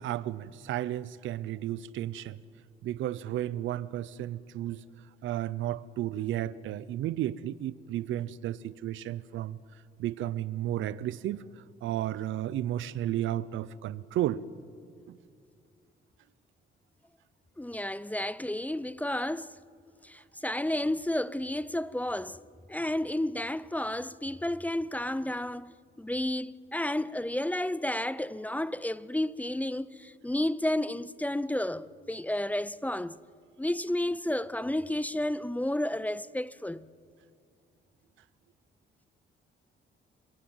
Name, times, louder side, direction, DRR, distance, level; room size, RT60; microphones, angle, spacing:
voice 1, 0.0-2.4 2.8-4.8 5.2-9.6 10.0-11.4 11.8-14.4 15.1-15.2, right 12 dB, 80° right, 0.7 m, -33 dB
voice 2, 17.6-19.5 20.0-22.4 22.7-33.2 33.6-36.9, left 1 dB, 10° left, 0.5 m, -31 dB
28.0 x 16.5 x 9.0 m
cardioid pair, 90°, 20 cm